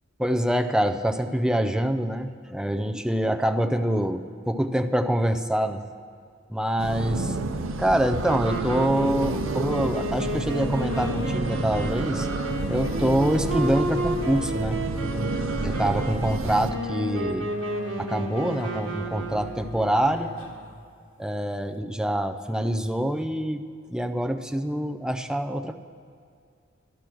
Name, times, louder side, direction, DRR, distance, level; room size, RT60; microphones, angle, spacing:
voice 1, 0.2-5.8 6.5-7.4 7.8-12.3 12.7-14.8 15.6-17.5 18.0-20.3 21.2-23.6 23.9-25.8, right 1 dB, 5° right, 7 dB, 0.4 m, -25 dB
sound 1, 6.8-16.7, right 3 dB, 90° right, 0.6 m, -30 dB
Wind instrument woodwind instrument, 8.1-19.9, right 1 dB, 65° right, 1.5 m, -32 dB
sound 2, 10.8-21.1, left 1 dB, 90° left, 1.2 m, -40 dB
12.0 x 11.5 x 6.1 m, 2.3 s
head